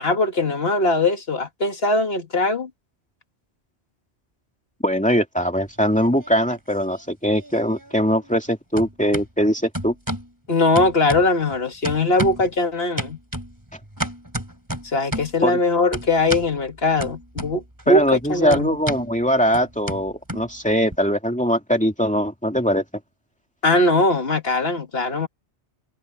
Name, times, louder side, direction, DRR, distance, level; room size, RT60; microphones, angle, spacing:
voice 1, 0.0-2.7 10.5-13.2 14.9-18.0 18.3-18.7 23.6-25.3, left 2 dB, 60° left, 2.2 m, -20 dB
voice 2, 4.8-9.9 15.4-15.6 17.9-22.8, equal, 5° left, 2.4 m, -21 dB
sound 1, 5.6-6.6 6.9-8.5 8.7-9.3 9.7-10.3 10.7-11.5 11.8-12.5 13.0-15.4 15.9-16.5 17.0-17.8 18.1-21.0, equal, 15° right, 4.8 m, -31 dB
omnidirectional pair, 1.1 m